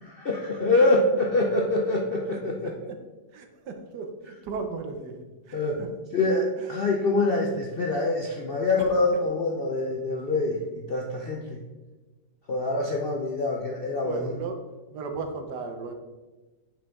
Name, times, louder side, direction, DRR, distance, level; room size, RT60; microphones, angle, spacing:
voice 1, 0.0-2.7 5.5-5.8 6.1-11.6 12.5-14.3, left 2 dB, 70° left, -1 dB, 0.5 m, -25 dB
voice 2, 3.3-5.2 5.5-5.9 6.6-6.7 14.0-14.6 14.9-15.9, right 4 dB, 70° right, 5 dB, 1.4 m, -35 dB
9.2 x 5.2 x 3.6 m, 1.2 s
omnidirectional pair, 1.9 m